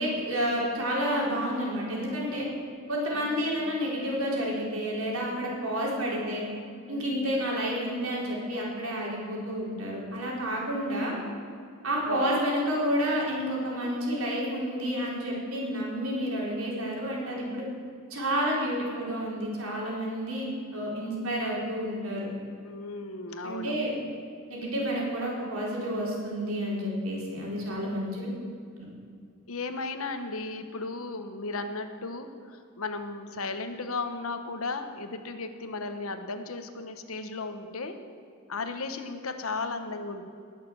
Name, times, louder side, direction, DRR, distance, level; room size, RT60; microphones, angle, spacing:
voice 1, 0.0-2.5 2.9-6.5 6.9-11.1 11.8-17.6 18.1-22.3 23.4-24.0 24.5-28.3 28.8-28.9, equal, 90° right, -3 dB, 4.1 m, -30 dB
voice 2, 3.1-3.8 6.8-7.4 12.1-12.3 22.6-23.8 27.7-28.2 29.5-38.0 38.5-40.3, left 3 dB, 85° left, 7 dB, 1.2 m, -36 dB
19.5 x 6.8 x 7.5 m, 2.4 s
head